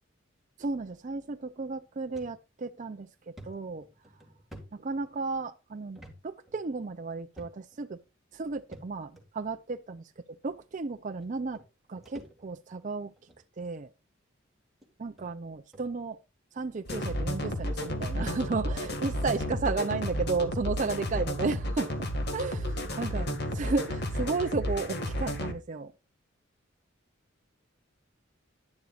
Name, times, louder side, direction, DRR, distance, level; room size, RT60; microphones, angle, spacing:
voice 1, 0.6-3.9 4.7-8.0 8.3-10.1 10.4-11.6 11.9-13.1 13.6-13.9 15.0-16.2 16.5-21.9 22.3-25.9, right 4 dB, 40° right, 0.5 m, -33 dB
sound 1, 2.1-2.3 2.8-2.9 3.4-5.4 5.9-6.2 6.5-6.6 7.3-7.8 8.7-9.2 10.1-10.2 11.2-11.3 11.5-12.7 13.2-13.4 14.2-14.3 14.8-14.9 15.2-15.3 15.7-15.9, equal, ahead, 2.2 m, -50 dB
sound 2, 16.9-25.5, equal, 55° left, 2.0 m, -32 dB
11.0 x 10.5 x 2.4 m
head